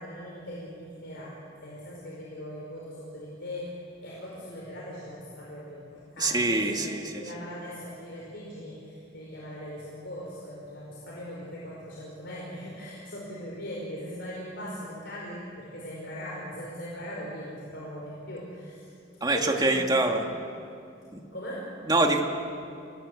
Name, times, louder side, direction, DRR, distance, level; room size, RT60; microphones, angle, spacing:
voice 1, 0.0-6.8 7.2-18.9 19.3-20.4 21.3-21.7, equal, 60° left, -3 dB, 4.8 m, -40 dB
voice 2, 6.2-7.2 19.2-20.3 21.1-21.2 21.9-22.2, right 2 dB, 20° right, 2 dB, 2.2 m, -24 dB
28.5 x 18.5 x 8.4 m, 2.5 s
head